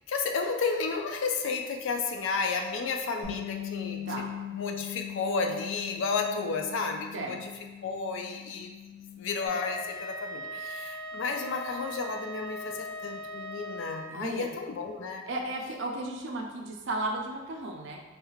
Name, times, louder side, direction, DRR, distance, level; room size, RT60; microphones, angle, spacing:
voice 1, 0.1-4.2 4.5-7.5 7.8-8.7 9.2-15.2, left 4 dB, 65° left, 4 dB, 0.3 m, -32 dB
Bass guitar, 3.2-9.5, left 10 dB, 45° left, 1.1 m, -40 dB
Wind instrument woodwind instrument, 9.4-14.2, left 1 dB, 20° left, 0.7 m, -39 dB
voice 2, 14.1-14.5 15.3-18.0, right 2 dB, 60° right, 2 dB, 0.4 m, -34 dB
3.1 x 3.1 x 2.4 m, 1.2 s
head